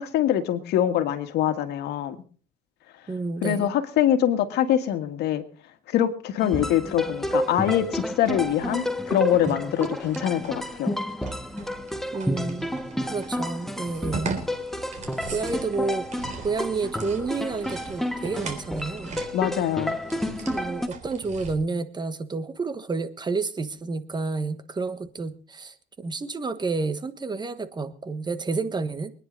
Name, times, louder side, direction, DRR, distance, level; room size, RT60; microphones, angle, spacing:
voice 1, 0.0-2.2 3.4-5.4 5.9-11.0 19.3-20.0, left 11 dB, 80° left, 9 dB, 1.8 m, -24 dB
voice 2, 3.1-3.7 12.1-12.7 13.1-14.3 15.3-16.1 16.4-19.2 20.5-29.1, right 3 dB, 25° right, 11 dB, 1.4 m, -30 dB
sound 1, 6.4-20.9, equal, ahead, 1.2 m, -31 dB
sound 2, 7.2-21.5, right 4 dB, 45° right, 3.8 m, -40 dB
24.5 x 10.0 x 4.0 m, 0.39 s
cardioid pair, 110°, 17 cm